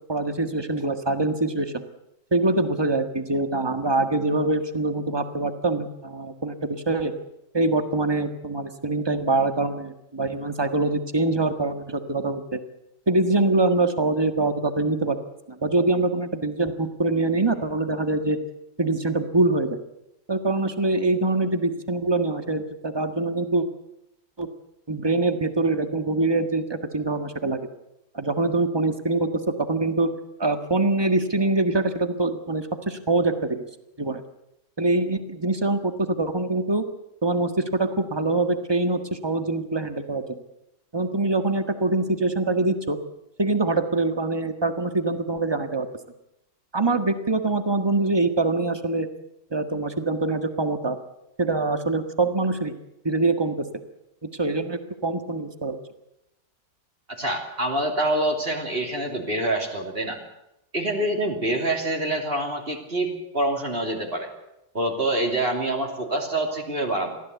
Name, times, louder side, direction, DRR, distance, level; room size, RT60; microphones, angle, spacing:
voice 1, 0.1-1.8 2.3-7.1 7.5-12.6 13.1-15.2 15.5-18.4 18.8-19.8 20.3-23.7 24.4-24.5 24.9-27.7 28.1-30.1 30.4-33.6 34.0-34.2 34.8-36.8 37.2-40.4 40.9-43.0 43.4-45.9 46.7-49.1 49.5-51.0 51.4-52.7 53.0-53.7 54.2-55.8, right 2 dB, 15° right, 8 dB, 1.5 m, -24 dB
voice 2, 57.1-60.2 60.7-64.3 64.7-67.2, right 1 dB, 30° right, 2 dB, 3.3 m, -26 dB
23.0 x 15.5 x 8.3 m, 0.84 s
omnidirectional pair, 1.9 m